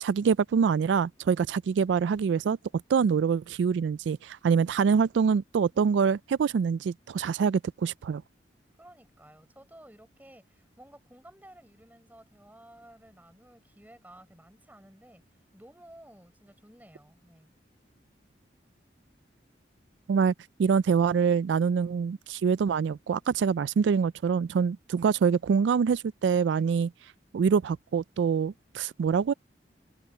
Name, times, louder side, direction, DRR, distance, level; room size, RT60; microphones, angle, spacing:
voice 1, 0.0-2.6 2.9-8.2 20.1-20.3 20.6-26.9 27.3-29.3, right 6 dB, 80° right, 0.3 m, -25 dB
voice 2, 8.8-15.2 15.5-17.5, right 1 dB, 10° right, 5.4 m, -54 dB
head